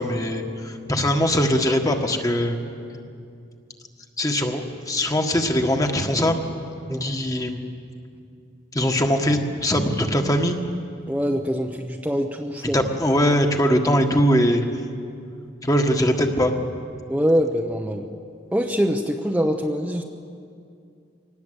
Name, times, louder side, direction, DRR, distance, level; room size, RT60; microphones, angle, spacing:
voice 1, 0.0-2.6 4.2-6.3 6.9-7.6 8.7-10.6 12.7-14.6 15.6-16.6, equal, 20° left, 4 dB, 1.6 m, -21 dB
voice 2, 11.1-12.8 17.1-18.0 18.5-20.0, equal, 5° right, 2 dB, 0.9 m, -24 dB
24.0 x 19.0 x 8.2 m, 2.4 s
head